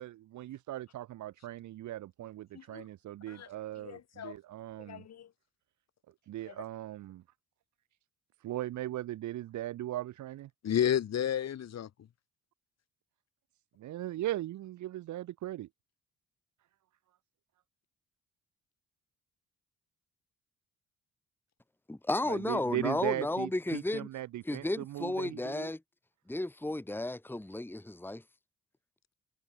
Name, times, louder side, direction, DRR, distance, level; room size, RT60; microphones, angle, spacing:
voice 1, 0.0-5.0 6.3-7.2 8.4-10.5 13.8-15.7 22.3-25.7, right 14 dB, 70° right, 1.0 m, -38 dB
voice 2, 3.8-4.4 4.8-5.3 6.5-6.6 10.6-11.9, left 9 dB, 60° left, 2.3 m, -32 dB
voice 3, 21.9-24.1 24.4-25.8 26.3-28.2, left 2 dB, 5° left, 1.8 m, -33 dB
cardioid pair, 90°, 30 cm